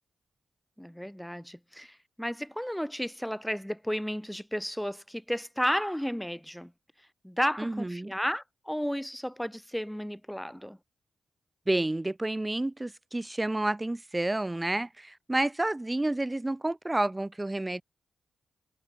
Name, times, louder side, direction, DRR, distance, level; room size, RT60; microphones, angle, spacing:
voice 1, 0.8-6.7 7.2-10.8, equal, 5° left, 2.1 m, -33 dB
voice 2, 7.6-8.1 11.7-17.8, right 2 dB, 20° right, 1.2 m, -30 dB
supercardioid pair, 40°, 0 cm